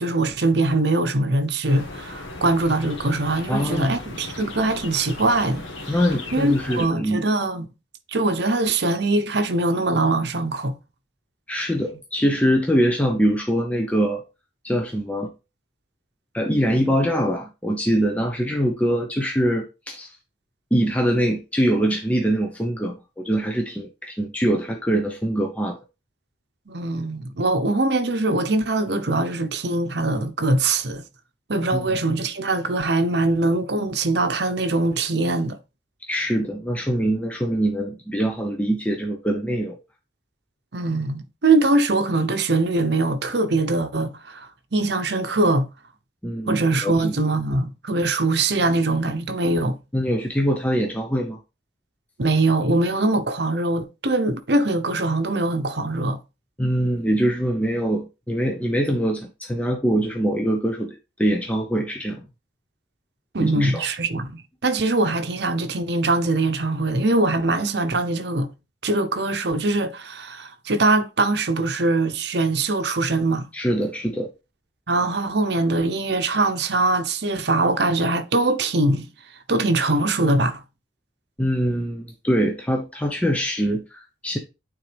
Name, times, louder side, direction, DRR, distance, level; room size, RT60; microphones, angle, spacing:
voice 1, 0.0-5.7 6.3-7.7 8.1-10.8 16.7-16.8 26.7-31.0 31.5-35.6 40.7-45.7 46.5-49.8 52.2-56.2 63.3-68.5 68.8-73.5 74.9-79.1 79.5-80.6, right 2 dB, 60° right, 0.8 m, -22 dB
sound 1, 1.7-6.9, left 2 dB, 85° left, 1.4 m, -37 dB
voice 2, 3.5-3.9 5.9-7.2 11.5-14.2 14.6-15.3 16.3-20.1 20.7-25.8 31.7-31.9 36.0-39.8 46.2-47.2 49.9-51.4 56.6-62.2 63.4-63.8 73.5-74.3 81.4-84.4, equal, 5° left, 0.6 m, -23 dB
9.0 x 3.8 x 3.3 m
head